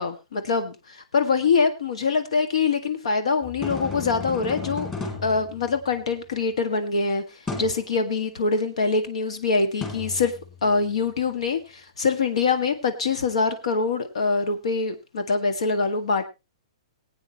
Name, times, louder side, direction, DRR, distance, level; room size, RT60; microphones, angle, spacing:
voice 1, 0.0-4.9 5.2-7.2 7.6-10.3 10.6-16.2, left 4 dB, 80° left, 8 dB, 1.8 m, -24 dB
sound 1, 3.4-6.2 7.5-7.9 9.8-10.9, left 4 dB, 15° left, 2.8 m, -34 dB
21.0 x 8.8 x 3.0 m, 0.26 s
hypercardioid pair, 175°, 3 cm